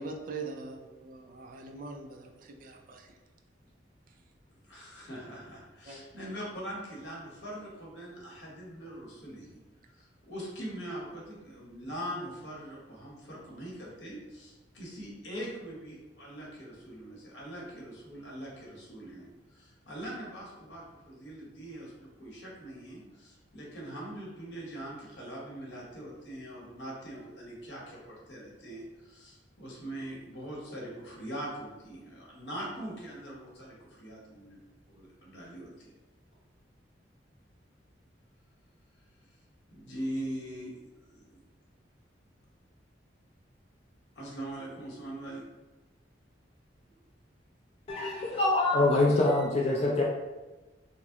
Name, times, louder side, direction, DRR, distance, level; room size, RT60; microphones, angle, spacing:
voice 1, 0.0-3.1 5.8-6.0, right 3 dB, 50° right, 3 dB, 0.3 m, -42 dB
voice 2, 4.7-9.6 10.3-19.3 19.6-21.9 22.2-34.6 34.9-35.9 39.7-40.7 41.1-41.4 44.2-45.4, right 1 dB, 70° left, -4 dB, 0.9 m, -42 dB
voice 3, 47.9-50.0, left 2 dB, 35° left, -4 dB, 0.3 m, -25 dB
2.9 x 2.0 x 3.5 m, 1.2 s
head